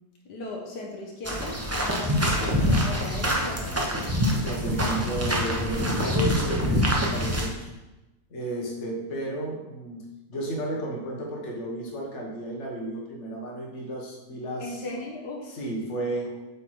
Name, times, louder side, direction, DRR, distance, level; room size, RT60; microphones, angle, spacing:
voice 1, 0.2-4.2 14.6-15.5, left 2 dB, 75° left, -1 dB, 1.7 m, -38 dB
sound 1, 1.2-7.5, equal, 15° right, 0.6 m, -25 dB
voice 2, 4.4-7.7 8.3-10.0 10.3-14.8 15.5-16.3, right 1 dB, 45° left, -1 dB, 1.5 m, -33 dB
7.8 x 4.1 x 4.7 m, 1.0 s
omnidirectional pair, 1.8 m